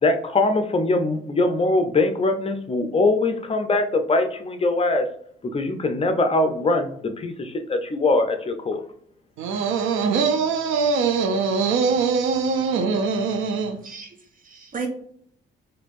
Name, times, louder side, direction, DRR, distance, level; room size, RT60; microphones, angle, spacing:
voice 1, 0.0-5.1 5.5-8.8, left 2 dB, 30° left, 7 dB, 0.6 m, -22 dB
voice 2, 9.4-13.8, right 5 dB, 85° right, 6 dB, 0.5 m, -22 dB
voice 3, 13.8-14.9, right 5 dB, 45° right, 3 dB, 0.8 m, -35 dB
4.2 x 2.6 x 2.5 m, 0.63 s
cardioid pair, 90°, 20 cm